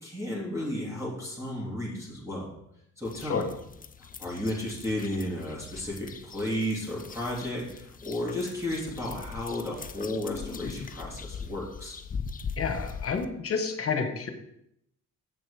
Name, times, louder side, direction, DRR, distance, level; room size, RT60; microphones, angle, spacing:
voice 1, 0.0-2.5 3.0-3.5 4.2-11.9, left 1 dB, 10° right, -5 dB, 2.9 m, -33 dB
sound 1, 3.0-13.3, left 5 dB, 30° left, 0.6 m, -41 dB
voice 2, 12.6-14.3, left 5 dB, 50° left, 6 dB, 1.4 m, -29 dB
7.6 x 6.0 x 5.0 m, 0.76 s
cardioid pair, 90°, 30 cm